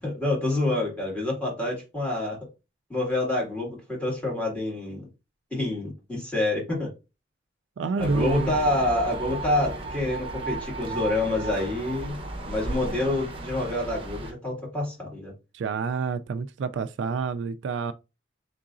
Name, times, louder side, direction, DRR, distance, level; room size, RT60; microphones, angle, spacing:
voice 1, 0.0-2.4 2.9-5.0 5.5-6.9 8.0-15.3, left 2 dB, 5° left, 2.0 m, -27 dB
voice 2, 7.8-8.5 15.5-17.9, right 4 dB, 70° right, 0.3 m, -28 dB
sound 1, 8.0-14.3, right 2 dB, 30° right, 0.8 m, -34 dB
3.9 x 3.7 x 2.5 m
head